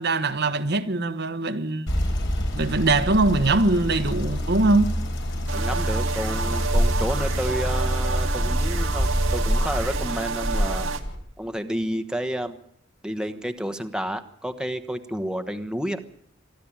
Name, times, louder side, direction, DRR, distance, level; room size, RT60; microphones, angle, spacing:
voice 1, 0.0-1.9 2.5-5.0, right 2 dB, 55° right, 1.2 m, -22 dB
sound 1, 1.9-11.2, equal, 65° left, 4.5 m, -26 dB
voice 2, 5.5-10.9 11.4-12.6 13.0-16.0, equal, 5° right, 1.2 m, -30 dB
sound 2, 5.5-11.0, right 5 dB, 80° right, 1.9 m, -31 dB
23.5 x 13.0 x 8.9 m
head